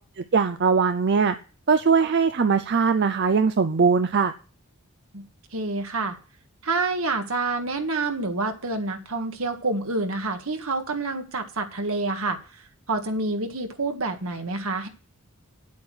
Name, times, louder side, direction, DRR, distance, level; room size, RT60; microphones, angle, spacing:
voice 1, 0.2-1.3 1.7-4.3, right 5 dB, 50° right, 9 dB, 0.5 m, -21 dB
voice 2, 5.5-6.2 6.6-12.6 12.9-14.9, right 3 dB, 75° right, 5 dB, 1.7 m, -28 dB
9.5 x 8.4 x 6.3 m, 0.38 s
head